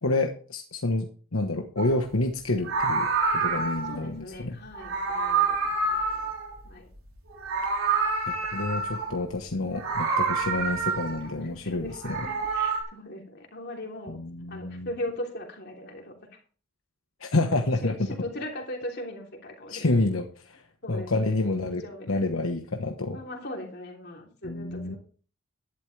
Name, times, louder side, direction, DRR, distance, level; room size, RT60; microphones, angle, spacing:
voice 1, 0.0-3.1 3.3-4.6 8.3-12.3 14.1-14.9 17.2-17.9 19.7-20.6 20.9-23.2 24.4-25.0, left 2 dB, 75° left, 4 dB, 1.2 m, -28 dB
Meow, 1.8-2.0 2.6-4.0 4.7-7.0 7.3-9.2 9.7-11.3 11.9-12.8, right 4 dB, 85° right, 3.6 m, -27 dB
voice 2, 3.5-5.6 5.8-6.3 6.6-6.9 11.2-14.2 14.5-16.1 17.4-20.2 20.8-21.1 21.5-22.2 23.1-25.0, left 1 dB, 50° left, 1 dB, 3.2 m, -39 dB
11.5 x 11.5 x 3.3 m, 0.40 s
head